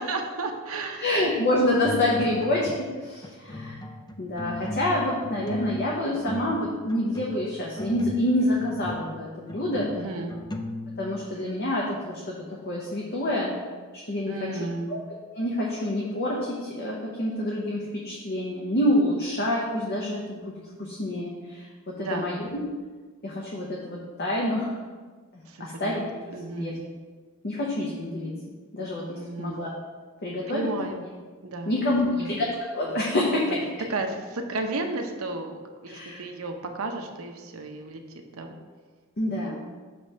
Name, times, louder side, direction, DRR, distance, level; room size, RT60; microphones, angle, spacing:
voice 1, 0.0-1.1 9.9-10.4 14.3-14.9 22.0-22.3 25.5-26.1 26.3-26.9 29.1-29.7 30.5-31.0 31.4-32.3 33.5-33.6 33.9-38.0 38.3-38.6 39.4-39.5, right 2 dB, 80° right, 4 dB, 0.7 m, -33 dB
voice 2, 1.0-3.8 4.2-9.9 11.0-12.3 12.6-13.5 13.9-14.3 14.9-15.0 15.3-21.7 22.0-22.6 23.2-24.7 25.3-26.0 26.5-26.7 27.4-28.3 28.7-29.7 30.2-30.7 31.7-33.4 35.9-36.2 39.2-39.5, left 1 dB, 50° left, -3 dB, 0.9 m, -27 dB
sound 1, 1.7-3.0 3.2-11.4, left 1 dB, 20° left, 0.4 m, -36 dB
6.7 x 3.1 x 5.5 m, 1.4 s
head